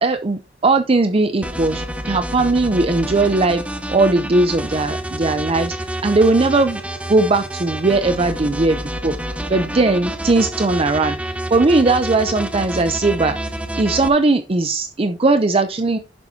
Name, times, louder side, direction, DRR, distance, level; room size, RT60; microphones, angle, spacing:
voice 1, 0.0-3.6 3.9-6.8 7.1-9.1 9.5-16.0, right 3 dB, 35° right, 9 dB, 0.6 m, -18 dB
sound 1, 1.4-14.1, right 1 dB, 10° right, 0.9 m, -28 dB
10.5 x 7.2 x 2.8 m, 0.28 s
head